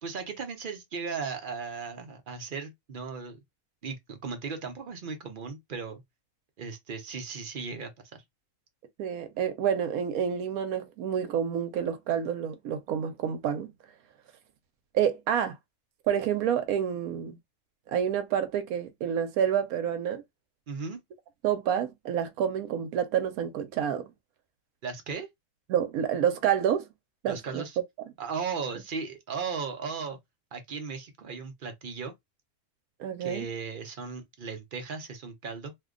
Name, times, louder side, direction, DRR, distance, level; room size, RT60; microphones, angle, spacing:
voice 1, 0.0-3.4 3.8-6.0 6.6-8.2 20.7-21.0 24.8-25.3 27.3-27.8 28.2-30.2 30.5-32.1 33.2-35.7, right 5 dB, 50° right, 0.6 m, -36 dB
voice 2, 9.0-13.7 14.9-15.6 16.1-17.4 17.9-20.2 21.4-24.1 25.7-26.9 27.2-27.6 33.0-33.4, right 9 dB, 80° right, 1.0 m, -28 dB
2.6 x 2.2 x 3.6 m
omnidirectional pair, 1.5 m